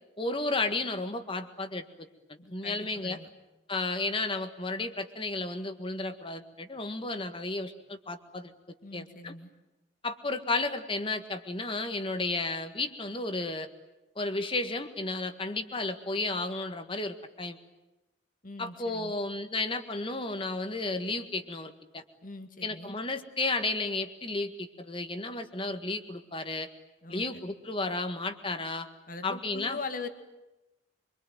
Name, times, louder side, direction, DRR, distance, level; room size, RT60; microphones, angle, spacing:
voice 1, 0.2-3.2 3.7-8.5 8.9-9.3 10.0-13.7 14.2-17.6 18.6-22.0 22.6-26.7 27.1-28.9 29.2-29.8, left 2 dB, 30° left, 9 dB, 1.7 m, -33 dB
voice 2, 2.4-3.3 8.8-9.5 18.4-19.2 22.2-23.0 27.0-27.5 29.1-30.1, left 3 dB, 45° left, 8 dB, 2.1 m, -42 dB
25.5 x 24.5 x 9.2 m, 1.0 s
head